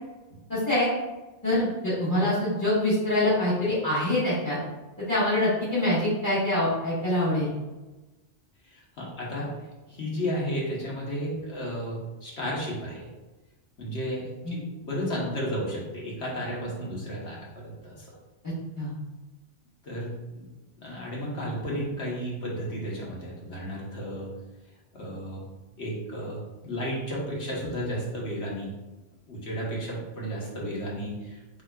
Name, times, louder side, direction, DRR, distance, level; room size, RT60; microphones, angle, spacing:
voice 1, 0.5-0.9 1.4-4.6 5.0-7.5 14.4-14.6 18.8-18.9, left 1 dB, 15° left, -11 dB, 1.3 m, -25 dB
voice 2, 8.7-9.5 9.9-13.1 13.8-18.2 19.8-20.5 20.8-24.3 24.9-25.4 25.8-28.7 29.3-31.6, equal, 65° left, -4 dB, 1.5 m, -33 dB
7.0 x 2.9 x 2.4 m, 1.1 s
omnidirectional pair, 1.2 m